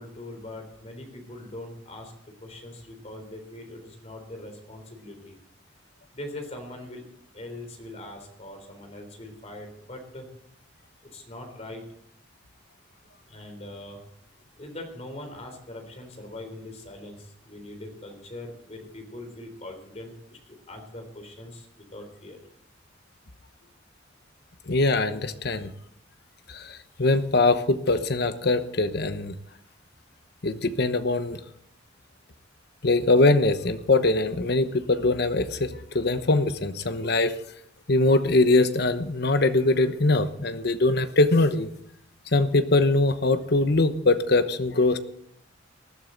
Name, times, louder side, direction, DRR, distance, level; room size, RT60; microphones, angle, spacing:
voice 1, 0.0-2.1 2.4-5.4 6.1-7.0 7.3-10.3 11.1-11.8 13.3-14.0 14.6-22.4, left 1 dB, 35° left, 5 dB, 3.6 m, -41 dB
voice 2, 24.7-25.7 26.5-29.3 30.4-31.4 32.8-37.3 37.9-41.7 42.3-45.0, left 2 dB, 60° left, 10 dB, 1.0 m, -22 dB
20.0 x 12.5 x 4.0 m, 0.74 s
head